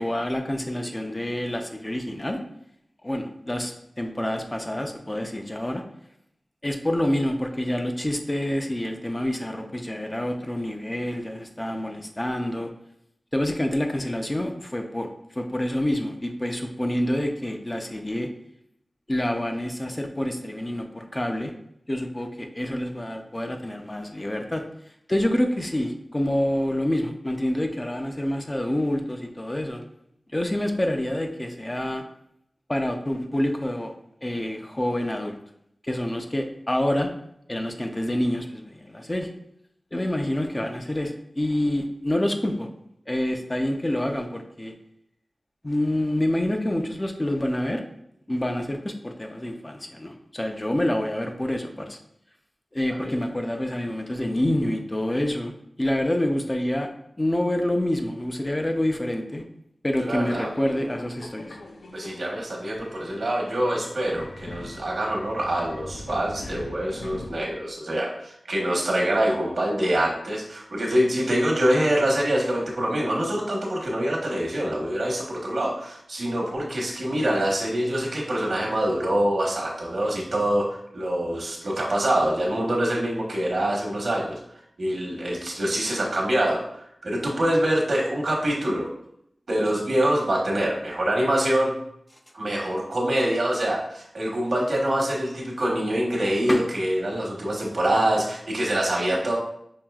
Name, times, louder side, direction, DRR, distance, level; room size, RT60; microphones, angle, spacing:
voice 1, 0.0-2.4 3.0-5.8 6.6-12.7 13.3-18.3 19.1-21.5 21.9-24.6 25.1-29.8 30.3-32.0 32.7-33.9 34.2-35.4 35.8-37.1 37.5-39.3 39.9-42.7 43.1-44.7 45.6-47.8 48.3-52.0 52.7-55.5 55.8-56.9 57.2-59.4 59.8-61.6 96.5-96.6, left 1 dB, 25° left, 4 dB, 0.5 m, -27 dB
voice 2, 60.0-60.5 61.9-88.9 89.5-91.7 92.3-99.4, right 1 dB, 75° right, -2 dB, 1.0 m, -25 dB
Subway metro underground, 60.2-67.8, left 2 dB, 80° left, 0.4 m, -42 dB
5.5 x 2.7 x 2.3 m, 0.73 s
wide cardioid pair, 60°, 0 cm